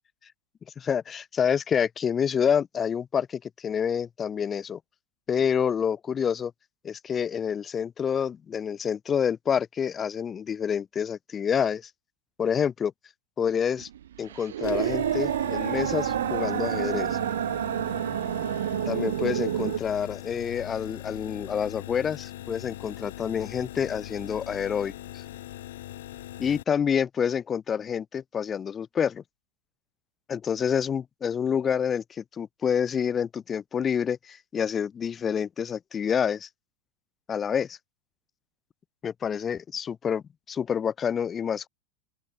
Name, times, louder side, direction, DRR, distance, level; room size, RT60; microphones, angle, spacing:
voice 1, 0.8-4.8 5.3-6.5 6.8-11.8 12.4-12.9 13.4-13.9 14.2-17.2 18.9-24.9 26.4-29.2 30.3-36.5 37.3-37.8 39.0-41.7, left 7 dB, 25° left, 0.3 m, -28 dB
sound 1, 13.8-19.8, right 11 dB, 80° right, 1.4 m, -28 dB
sound 2, 14.6-26.6, left 14 dB, 75° left, 0.7 m, -40 dB
open air
hypercardioid pair, 110°, 0 cm